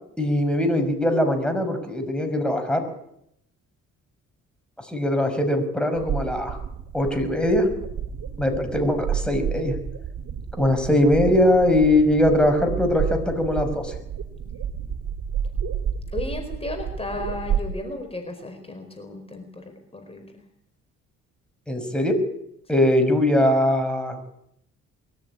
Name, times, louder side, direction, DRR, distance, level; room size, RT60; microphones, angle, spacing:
voice 1, 0.2-2.8 4.9-6.6 6.9-7.7 8.4-9.8 10.6-13.9 21.7-22.2 22.7-24.2, left 1 dB, 5° left, 5 dB, 6.0 m, -21 dB
sound 1, 5.9-17.7, right 8 dB, 75° right, 3.2 m, -30 dB
voice 2, 16.1-20.4, left 2 dB, 20° left, 4 dB, 4.7 m, -34 dB
22.5 x 14.0 x 9.8 m, 0.77 s
cardioid pair, 90°, 30 cm